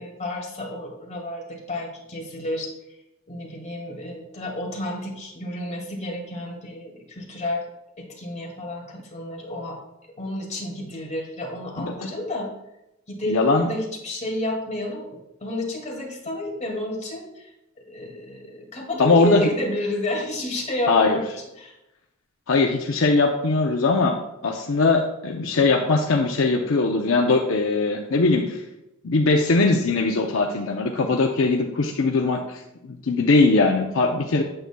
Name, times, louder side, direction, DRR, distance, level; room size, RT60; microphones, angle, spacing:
voice 1, 0.0-2.7 3.3-7.6 8.0-9.8 10.2-12.5 13.1-17.5 17.9-21.2 21.6-21.7, left 1 dB, 35° left, -1 dB, 2.2 m, -31 dB
voice 2, 13.2-13.7 19.0-19.4 20.9-21.2 22.5-24.2 24.4-28.6 29.0-34.4, left 3 dB, 70° left, 2 dB, 0.6 m, -20 dB
8.8 x 8.0 x 2.3 m, 0.90 s
head